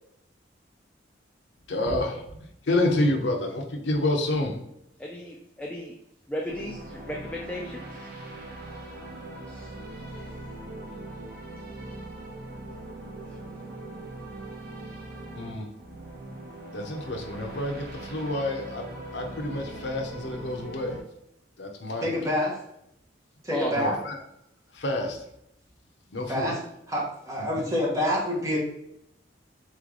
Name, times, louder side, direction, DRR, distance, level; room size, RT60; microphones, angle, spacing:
voice 1, 1.7-2.2 2.7-4.5 15.3-15.7 16.7-18.8 19.1-21.0 21.6-22.2 23.7-24.2 24.7-25.2 26.1-26.5 27.5-27.7, left 1 dB, 70° left, 3 dB, 0.6 m, -28 dB
voice 2, 5.0-5.9 6.3-8.1 9.5-9.7 13.2-13.3 23.5-23.7, equal, 5° left, -1 dB, 0.4 m, -35 dB
sound 1, 6.5-21.0, right 2 dB, 55° right, 0.8 m, -41 dB
voice 3, 22.0-22.6 23.4-24.0 26.3-26.6 26.9-28.6, left 1 dB, 15° right, -4 dB, 1.1 m, -27 dB
3.8 x 3.2 x 3.7 m, 0.78 s
head